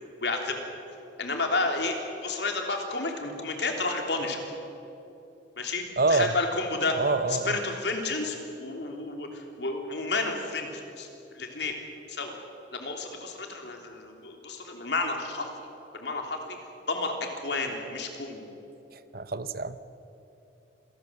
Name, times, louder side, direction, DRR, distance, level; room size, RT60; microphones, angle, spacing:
voice 1, 0.2-0.6 1.2-2.0 2.2-4.4 5.6-6.9 7.3-11.1 11.3-11.7 12.1-12.3 12.7-15.5 15.9-16.4 16.9-17.1 17.4-18.4, left 3 dB, 65° left, 3 dB, 3.3 m, -31 dB
voice 2, 6.0-6.3 6.9-7.6 18.9-19.8, right 3 dB, 50° right, 13 dB, 0.8 m, -27 dB
26.5 x 18.5 x 7.9 m, 2.9 s
head